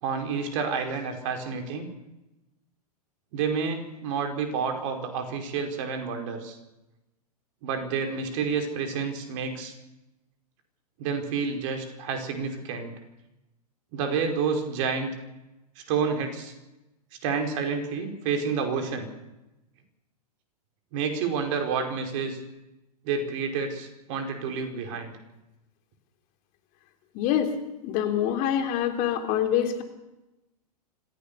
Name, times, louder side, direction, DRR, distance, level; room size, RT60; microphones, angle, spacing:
voice 1, 0.0-1.9 3.3-6.6 7.6-9.7 11.0-12.9 13.9-15.1 15.9-16.5 17.2-19.1 20.9-22.4 23.0-25.1, right 5 dB, 50° right, 5 dB, 5.0 m, -29 dB
voice 2, 27.1-27.5 27.8-29.8, left 10 dB, 45° left, 6 dB, 3.5 m, -25 dB
26.0 x 15.5 x 6.9 m, 0.97 s
hypercardioid pair, 105°, 20 cm